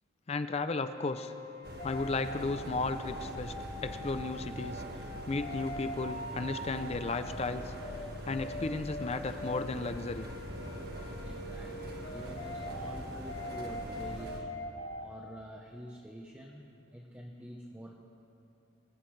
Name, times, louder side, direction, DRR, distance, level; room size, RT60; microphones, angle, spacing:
voice 1, 0.3-1.3 1.8-3.5 3.8-4.8 5.3-7.7 8.2-10.3, left 3 dB, 30° left, 10 dB, 0.4 m, -34 dB
sound 1, 0.7-15.0, left 1 dB, 70° left, 4.2 m, -43 dB
sound 2, 1.6-14.4, equal, 50° right, 1.6 m, -43 dB
voice 2, 11.2-14.5 15.0-17.9, equal, 10° right, 0 dB, 0.8 m, -47 dB
25.5 x 15.0 x 3.2 m, 2.7 s
head